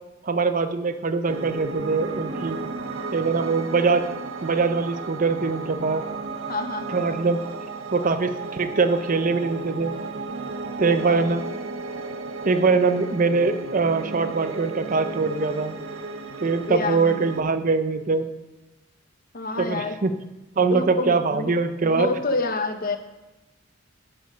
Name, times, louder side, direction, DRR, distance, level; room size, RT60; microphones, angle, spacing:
voice 1, 0.2-2.6 3.1-4.0 4.4-6.0 6.9-7.4 7.9-9.9 10.8-11.4 12.5-15.8 16.4-18.3 19.6-20.1 20.6-22.1, right 4 dB, 40° right, 10 dB, 0.6 m, -23 dB
Piano, 1.3-17.4, right 3 dB, 85° right, 0.8 m, -34 dB
voice 2, 6.5-7.0 10.8-11.3 16.7-17.2 19.3-20.0 20.7-21.5 21.8-23.0, left 3 dB, 45° left, 7 dB, 0.9 m, -28 dB
10.0 x 7.9 x 5.4 m, 1.1 s
head